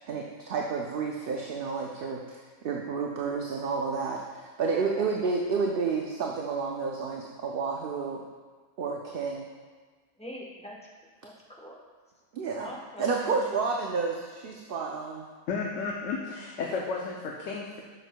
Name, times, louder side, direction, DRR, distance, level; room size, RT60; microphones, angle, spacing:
voice 1, 0.1-8.2 8.8-9.5 12.3-12.7 13.0-15.3, right 4 dB, 60° right, 0 dB, 0.7 m, -30 dB
voice 2, 10.2-10.8 11.2-11.7 12.6-13.4 16.6-16.8, left 1 dB, 5° left, -3 dB, 0.9 m, -42 dB
voice 3, 15.5-17.8, left 4 dB, 85° left, -1 dB, 1.0 m, -33 dB
9.9 x 6.3 x 2.2 m, 1.5 s
omnidirectional pair, 1.3 m